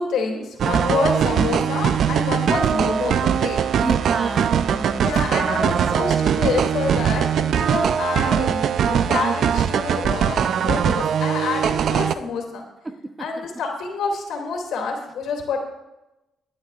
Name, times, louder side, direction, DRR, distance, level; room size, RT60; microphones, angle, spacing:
voice 1, 0.0-3.6 5.0-12.6 13.2-15.6, left 4 dB, 80° left, 1 dB, 2.5 m, -27 dB
sound 1, 0.6-12.1, right 8 dB, 65° right, 0.4 m, -21 dB
voice 2, 3.8-5.2 12.8-13.5, right 2 dB, 20° right, 8 dB, 0.8 m, -31 dB
21.0 x 9.7 x 2.4 m, 0.97 s
cardioid pair, 90°, 0 cm